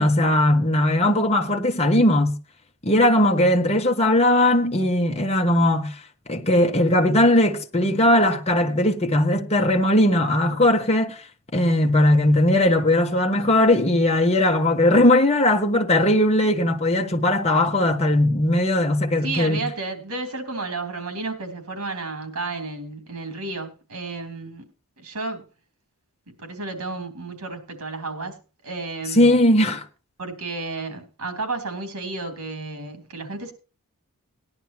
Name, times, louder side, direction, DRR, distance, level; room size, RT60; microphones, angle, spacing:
voice 1, 0.0-2.4 2.8-5.9 6.3-11.2 11.5-19.6 29.1-29.8, left 1 dB, 30° left, 1.3 m, -19 dB
voice 2, 19.2-24.6 25.0-25.4 26.4-28.4 28.6-29.4 30.2-33.5, right 3 dB, 90° right, 3.4 m, -32 dB
18.5 x 11.0 x 2.9 m
head